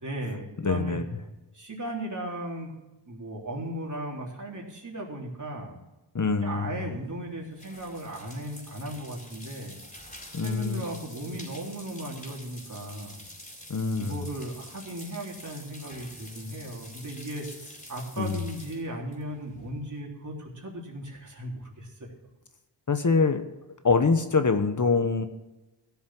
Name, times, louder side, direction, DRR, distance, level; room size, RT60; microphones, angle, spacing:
voice 1, 0.0-1.0 1.5-2.7 3.1-5.8 6.4-9.8 10.4-13.2 14.0-22.1, right 1 dB, 40° right, -1 dB, 3.7 m, -36 dB
voice 2, 0.6-1.0 6.1-6.9 10.3-10.8 13.7-14.2 18.2-18.4 22.9-23.4 23.8-25.3, left 4 dB, 45° left, 8 dB, 1.2 m, -24 dB
sound 1, 6.8-20.0, left 1 dB, 15° left, 4.4 m, -47 dB
15.5 x 7.3 x 6.1 m, 1.0 s
wide cardioid pair, 70°, 44 cm